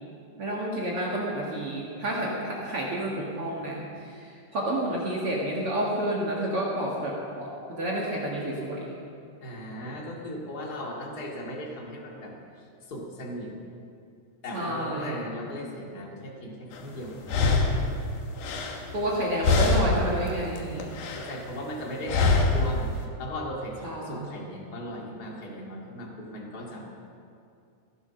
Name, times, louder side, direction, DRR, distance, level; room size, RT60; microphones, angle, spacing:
voice 1, 0.4-9.0 14.5-15.2 18.9-21.0 23.8-24.3, right 1 dB, 55° right, -4 dB, 1.7 m, -30 dB
voice 2, 9.4-13.5 14.4-17.7 21.1-26.9, equal, 35° left, -2 dB, 1.7 m, -37 dB
sound 1, 16.7-16.8 17.3-19.2 19.4-20.1 20.5-21.4 22.1-22.7, left 3 dB, 65° left, 2.3 m, -24 dB
18.0 x 11.0 x 5.8 m, 2.5 s
omnidirectional pair, 4.9 m